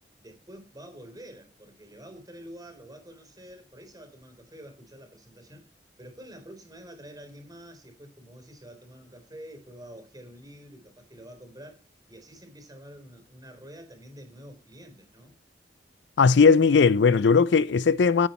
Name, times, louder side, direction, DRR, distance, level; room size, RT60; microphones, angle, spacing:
voice 1, 0.2-5.7 6.0-11.8 12.1-15.4, equal, 20° right, 3.9 m, -47 dB
voice 2, 16.2-18.3, left 5 dB, 75° left, 0.5 m, -18 dB
15.0 x 8.1 x 4.4 m
head